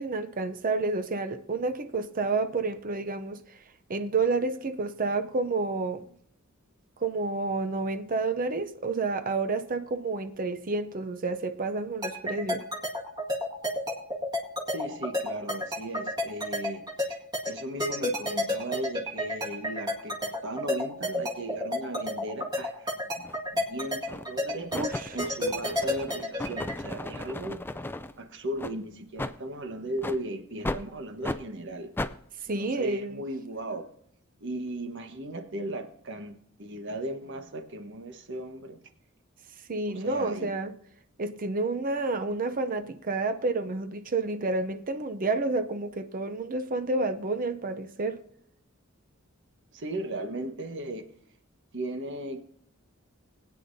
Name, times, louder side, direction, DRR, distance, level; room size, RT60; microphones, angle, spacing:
voice 1, 0.0-3.4 3.9-6.1 7.0-12.6 23.2-23.3 23.5-23.6 24.7-25.2 32.5-33.2 39.7-40.7 41.2-48.2, right 3 dB, 40° right, 0.6 m, -30 dB
sound 1, 12.0-26.7, left 1 dB, 20° right, 1.9 m, -30 dB
voice 2, 14.7-17.2 17.4-23.0 23.7-24.8 25.1-27.6 28.2-31.9 32.6-33.9 34.4-38.8 39.9-40.6 49.7-51.1 51.7-52.4, right 1 dB, 60° right, 1.3 m, -37 dB
sound 2, 23.2-23.4 24.1-24.4 24.7-28.1 28.6-28.7 29.2-29.4 30.0-30.2 30.6-30.8 31.2-31.4 32.0-32.1, left 2 dB, 10° left, 0.4 m, -35 dB
19.5 x 9.4 x 2.7 m
head